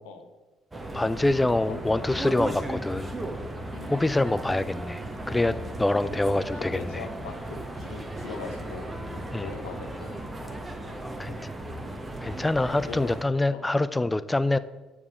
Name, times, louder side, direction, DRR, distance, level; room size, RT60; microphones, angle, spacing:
sound 1, 0.7-13.2, right 1 dB, 20° right, 1.1 m, -36 dB
voice 1, 0.9-3.2 3.9-7.0 9.3-9.5 11.0-11.3 12.2-14.6, left 2 dB, 15° left, 14 dB, 0.4 m, -25 dB
voice 2, 3.7-4.1 6.0-8.9 9.4-11.0 11.3-11.4 12.9-13.1 13.5-13.7, left 5 dB, 70° left, 5 dB, 0.8 m, -41 dB
8.6 x 4.8 x 5.1 m, 1.1 s
figure-of-eight pair, 45°, 0 cm